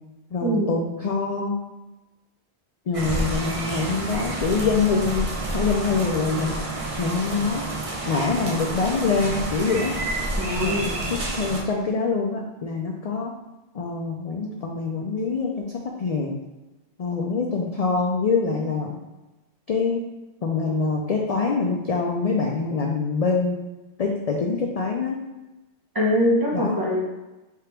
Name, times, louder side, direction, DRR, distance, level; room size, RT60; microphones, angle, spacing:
voice 1, 0.3-1.5 2.9-5.3 5.5-6.6 7.0-7.6 8.1-9.9 10.6-13.3 13.7-15.7 16.0-16.3 17.0-19.0 19.7-20.0 20.4-23.6 24.0-25.2 26.5-26.8, left 4 dB, 55° left, 0 dB, 0.4 m, -25 dB
sound 1, 2.9-11.6, right 2 dB, 40° right, 0.6 m, -29 dB
voice 2, 10.4-10.9 25.9-27.0, equal, 20° right, -5 dB, 1.0 m, -22 dB
3.5 x 2.9 x 4.5 m, 1.1 s
omnidirectional pair, 1.1 m